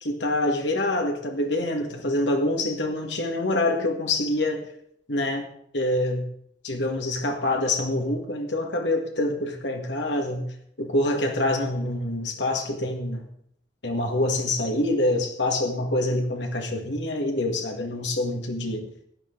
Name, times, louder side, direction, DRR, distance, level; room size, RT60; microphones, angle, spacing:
voice 1, 0.0-4.7 5.1-5.5 5.7-6.3 6.6-10.5 10.8-13.3 13.8-18.9, left 1 dB, 70° left, 3 dB, 2.0 m, -26 dB
16.0 x 10.5 x 4.0 m, 0.68 s
head